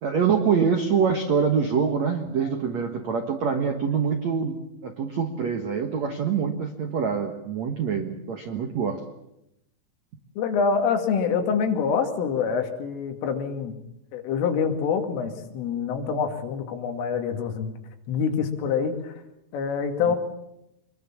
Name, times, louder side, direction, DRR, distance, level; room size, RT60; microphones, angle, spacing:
voice 1, 0.0-9.0 20.1-20.2, right 6 dB, 75° right, 6 dB, 1.6 m, -25 dB
voice 2, 10.4-13.7 14.1-17.7 18.1-19.2 19.5-20.2, left 6 dB, 85° left, 5 dB, 4.8 m, -26 dB
25.0 x 21.5 x 7.4 m, 0.84 s
omnidirectional pair, 5.6 m